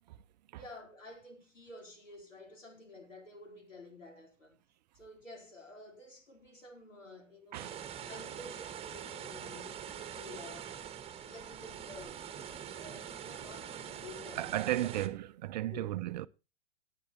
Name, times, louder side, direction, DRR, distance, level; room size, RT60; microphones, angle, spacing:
voice 1, 0.5-4.6 4.9-7.8 8.1-10.8 11.2-12.3 12.8-14.7 15.7-15.9, left 2 dB, 80° left, 4.0 m, -51 dB
sound 1, 7.5-15.1, right 9 dB, 15° right, 1.3 m, -44 dB
voice 2, 14.4-16.3, right 14 dB, 35° right, 0.5 m, -34 dB
18.0 x 9.1 x 3.0 m
figure-of-eight pair, 110°, 38 cm